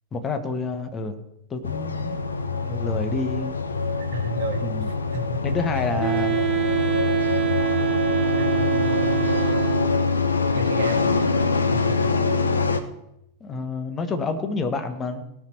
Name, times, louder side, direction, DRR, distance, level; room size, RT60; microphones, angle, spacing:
voice 1, 0.1-1.2 1.5-2.2 2.5-3.6 4.6-4.9 5.4-6.4 8.7-9.3 13.4-15.2, left 3 dB, 25° left, 7 dB, 1.3 m, -29 dB
sound 1, 1.6-12.8, left 4 dB, 75° left, 0.8 m, -24 dB
voice 2, 4.0-4.7 5.1-5.4 5.9-6.0 8.4-8.7 10.5-11.8, right 1 dB, 60° right, 6 dB, 1.5 m, -32 dB
Wind instrument woodwind instrument, 6.0-10.1, right 17 dB, 35° right, 1.1 m, -25 dB
18.0 x 6.2 x 4.6 m, 0.81 s
figure-of-eight pair, 90°, 0 cm